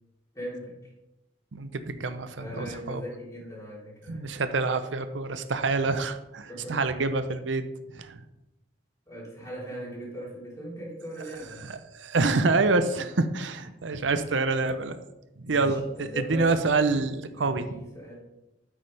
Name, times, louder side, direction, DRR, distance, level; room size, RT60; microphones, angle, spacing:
voice 1, 0.3-0.7 2.4-4.3 6.5-6.8 9.1-11.7 12.9-13.0 15.5-16.7 17.4-18.2, equal, 20° left, -5 dB, 3.5 m, -39 dB
voice 2, 1.5-3.0 4.1-7.7 7.9-8.2 11.7-15.0 15.4-17.8, right 3 dB, 90° right, 10 dB, 0.7 m, -27 dB
9.1 x 8.6 x 3.4 m, 0.94 s
head